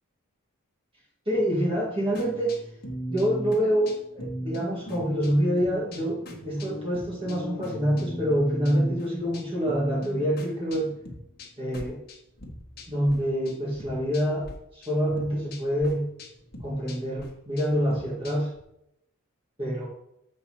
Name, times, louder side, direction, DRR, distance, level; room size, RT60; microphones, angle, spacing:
voice 1, 1.3-2.5 3.1-10.9 11.6-12.0 12.9-14.5 14.7-16.1 16.6-18.5 19.6-19.9, equal, 25° right, -4 dB, 2.0 m, -26 dB
sound 1, 2.1-13.2 13.4-14.5 14.8-18.6, equal, 45° left, 1.4 m, -39 dB
7.5 x 4.3 x 6.1 m, 0.78 s
head